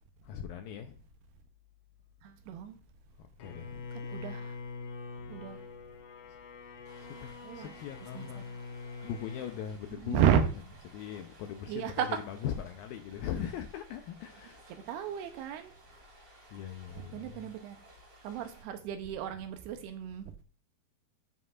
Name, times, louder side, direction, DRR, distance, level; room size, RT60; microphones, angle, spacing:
voice 1, 0.2-1.0 3.2-3.9 5.3-5.4 7.1-8.4 9.0-10.2 10.5-14.6 16.5-17.5, left 9 dB, 85° left, 2.2 m, -40 dB
voice 2, 2.2-2.8 3.9-4.6 5.3-5.6 7.4-7.8 8.1-8.6 9.9-10.4 11.7-12.2 14.7-15.7 17.1-17.8 18.2-20.4, right 8 dB, 80° right, 2.7 m, -33 dB
Bowed string instrument, 3.4-9.7, left 4 dB, 65° left, 2.1 m, -44 dB
Stream, 6.9-18.6, right 2 dB, 40° right, 4.1 m, -58 dB
12.5 x 5.5 x 2.4 m
omnidirectional pair, 4.7 m